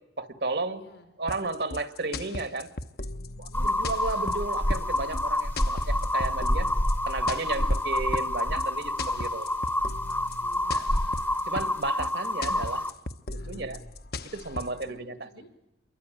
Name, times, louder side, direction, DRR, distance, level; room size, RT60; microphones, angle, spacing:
voice 1, 0.2-0.8 1.2-2.7 3.4-6.7 7.1-9.5 10.7-10.8 11.5-12.8 13.3-13.8 14.3-15.1, right 3 dB, 70° right, 10 dB, 2.0 m, -33 dB
voice 2, 0.7-1.1 3.5-4.2 5.6-5.8 7.4-7.8 10.4-11.4 13.3-13.7 14.7-15.5, left 1 dB, 80° left, 7 dB, 5.7 m, -53 dB
sound 1, 1.3-14.8, left 2 dB, 55° left, 1.1 m, -38 dB
sound 2, 3.5-12.9, left 1 dB, 10° left, 1.0 m, -28 dB
28.0 x 22.5 x 9.2 m, 0.98 s
head